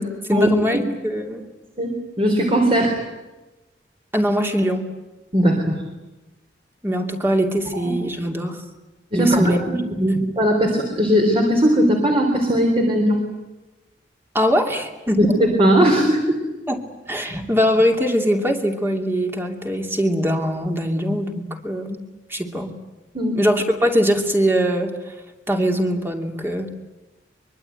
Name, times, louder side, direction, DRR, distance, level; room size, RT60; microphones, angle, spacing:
voice 1, 0.0-1.4 4.1-4.9 6.8-8.6 9.1-9.6 10.0-10.1 14.3-15.2 16.7-16.8 17.1-22.0 22.3-22.7 23.4-24.9 25.5-26.7, equal, 15° right, 3 dB, 2.7 m, -22 dB
voice 2, 1.8-3.0 5.3-5.7 7.7-7.9 9.1-13.2 15.2-16.4 17.3-17.4 23.1-23.4, equal, 30° right, 2 dB, 3.8 m, -18 dB
24.5 x 23.0 x 9.3 m, 1.1 s
head